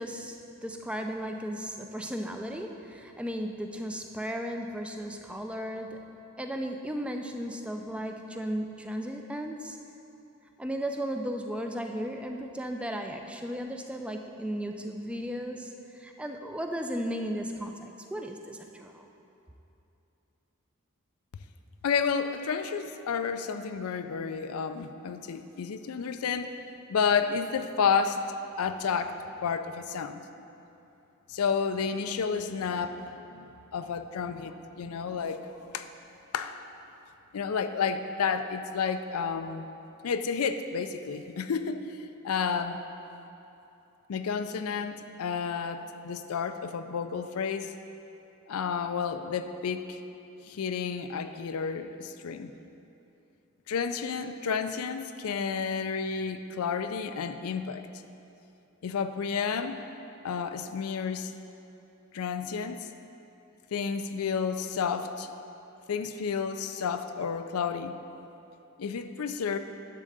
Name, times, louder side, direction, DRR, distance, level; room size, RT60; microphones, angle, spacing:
voice 1, 0.0-6.1 6.4-9.8 10.6-19.1, equal, 5° right, 4 dB, 0.4 m, -35 dB
voice 2, 21.8-26.5 26.9-30.2 31.3-35.9 36.3-36.6 37.3-39.7 40.0-42.0 42.2-42.8 44.1-47.7 48.5-50.0 50.4-52.5 53.7-57.9 58.8-59.8 60.2-61.3 62.1-62.9 63.7-65.3 65.9-68.0 68.8-69.6, left 6 dB, 85° left, 9 dB, 0.4 m, -31 dB
10.5 x 3.7 x 6.7 m, 2.8 s
head